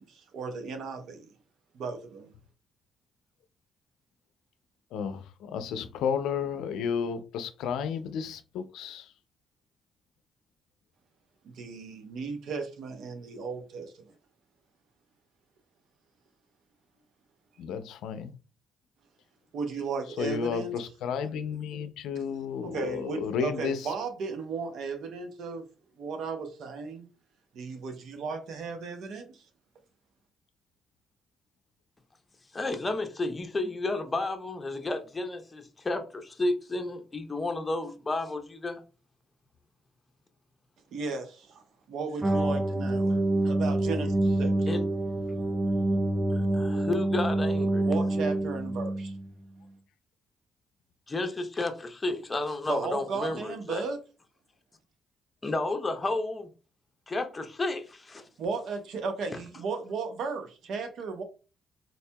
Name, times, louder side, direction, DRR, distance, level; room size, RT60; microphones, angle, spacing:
voice 1, 0.0-1.3 1.7-2.3 11.4-13.9 19.5-20.8 22.6-25.7 26.0-27.1 27.5-29.4 40.9-44.7 47.8-49.1 52.7-54.0 58.4-61.2, right 4 dB, 75° right, 0.7 m, -35 dB
voice 2, 4.9-9.1 17.6-18.3 20.2-23.9, left 7 dB, 85° left, 0.4 m, -32 dB
voice 3, 32.5-38.8 44.7-44.8 46.3-47.9 51.1-53.8 55.4-56.5 57.1-58.2, left 2 dB, 25° left, 0.7 m, -32 dB
sound 1, 42.2-49.3, right 1 dB, 20° right, 0.5 m, -27 dB
4.1 x 2.7 x 2.2 m
cardioid pair, 90°, 0 cm